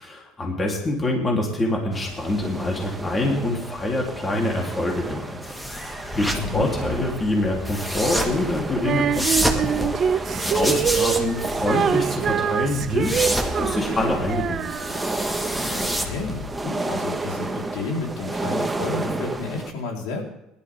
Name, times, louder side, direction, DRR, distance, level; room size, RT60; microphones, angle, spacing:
voice 1, 0.0-5.4 5.7-14.8, left 2 dB, 25° left, 0 dB, 3.3 m, -26 dB
sound 1, 1.9-19.7, right 2 dB, 10° right, 1.3 m, -32 dB
sound 2, 5.4-16.5, equal, 5° left, 2.0 m, -29 dB
voice 2, 6.4-6.7 10.8-10.9 15.7-20.2, left 4 dB, 75° left, 0 dB, 4.0 m, -31 dB
Female singing, 8.8-15.3, right 8 dB, 40° right, 0.8 m, -25 dB
18.0 x 12.0 x 3.6 m, 0.89 s
supercardioid pair, 105°, 0 cm